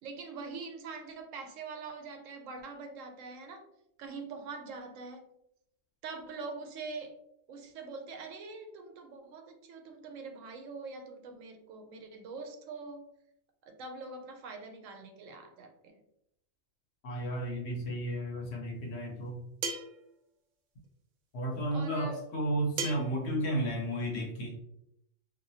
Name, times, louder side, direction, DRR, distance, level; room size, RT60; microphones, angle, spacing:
voice 1, 0.0-3.7 4.0-5.3 6.0-7.2 7.5-13.1 13.6-16.0 21.7-22.2, right 4 dB, 85° right, 5 dB, 1.0 m, -44 dB
voice 2, 17.0-19.4 21.3-24.6, right 1 dB, 65° left, -1 dB, 1.0 m, -33 dB
sound 1, 19.6-20.0 22.8-23.2, right 4 dB, 60° right, 0.5 m, -35 dB
2.8 x 2.6 x 2.7 m, 0.77 s
omnidirectional pair, 1.3 m